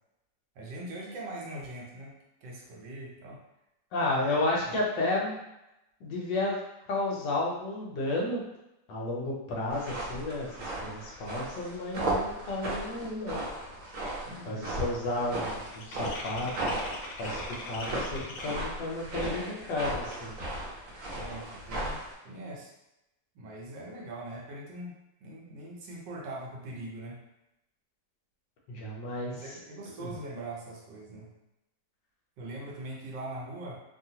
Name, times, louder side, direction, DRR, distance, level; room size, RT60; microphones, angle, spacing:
voice 1, 0.5-2.1 2.4-3.4 4.6-4.9 14.2-14.7 21.1-22.7 23.3-27.2 29.3-31.3 32.4-33.8, right 1 dB, 75° right, -2 dB, 1.3 m, -42 dB
voice 2, 3.9-5.4 6.0-6.6 6.9-8.4 8.9-13.4 14.5-16.7 17.2-20.3 28.7-29.4 30.0-30.1, left 2 dB, 70° left, -3 dB, 1.4 m, -32 dB
sound 1, 9.7-22.1, right 1 dB, 55° right, 1.1 m, -36 dB
sound 2, 13.2-13.3 13.6-14.0 14.2-18.9, left 2 dB, 90° left, 1.4 m, -43 dB
3.2 x 2.3 x 2.7 m, 0.91 s
omnidirectional pair, 2.1 m